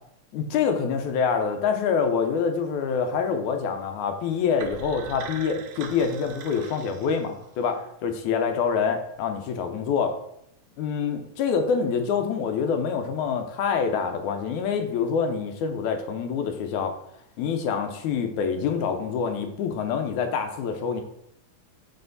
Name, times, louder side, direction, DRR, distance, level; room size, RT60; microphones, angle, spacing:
voice 1, 0.3-10.2 10.8-16.9 17.4-21.0, left 6 dB, 80° left, 6 dB, 2.1 m, -26 dB
sound 1, 4.6-7.6, right 6 dB, 80° right, 1.4 m, -42 dB
5.6 x 4.5 x 3.9 m, 0.74 s
omnidirectional pair, 3.5 m